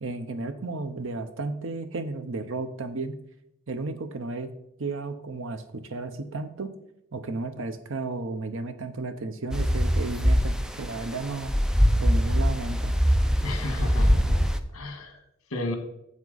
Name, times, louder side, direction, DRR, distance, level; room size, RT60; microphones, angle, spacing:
voice 1, 0.0-3.2 3.7-4.5 4.8-6.7 7.1-11.5 12.0-12.9, right 3 dB, 60° right, 10 dB, 0.8 m, -33 dB
sound 1, 9.5-14.6, equal, 5° right, 0.4 m, -23 dB
voice 2, 13.4-15.2 15.5-15.7, left 2 dB, 75° left, 5 dB, 1.6 m, -33 dB
7.9 x 7.4 x 4.0 m, 0.81 s
head